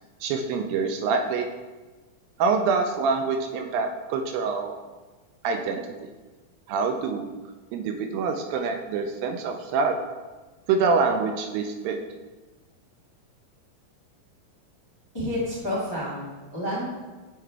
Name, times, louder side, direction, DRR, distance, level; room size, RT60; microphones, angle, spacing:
voice 1, 0.2-1.5 2.4-4.7 5.4-5.8 6.7-7.3 7.7-10.0 10.7-12.0, right 4 dB, 80° right, 4 dB, 2.1 m, -25 dB
voice 2, 15.1-16.8, left 1 dB, 20° left, -8 dB, 0.7 m, -29 dB
8.5 x 4.5 x 3.3 m, 1.3 s
omnidirectional pair, 4.2 m